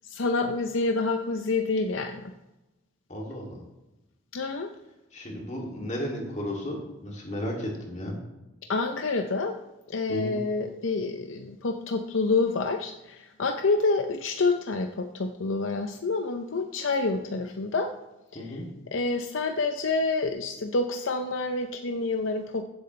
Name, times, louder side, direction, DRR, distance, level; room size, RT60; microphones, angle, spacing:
voice 1, 0.0-2.3 4.3-4.7 8.7-9.6 9.9-17.9 18.3-18.6 18.9-22.6, left 3 dB, 70° left, 5 dB, 0.6 m, -28 dB
voice 2, 3.1-3.6 5.1-8.2 10.1-10.4 18.3-18.7, equal, 35° left, -1 dB, 2.6 m, -34 dB
15.0 x 8.1 x 3.2 m, 0.99 s
head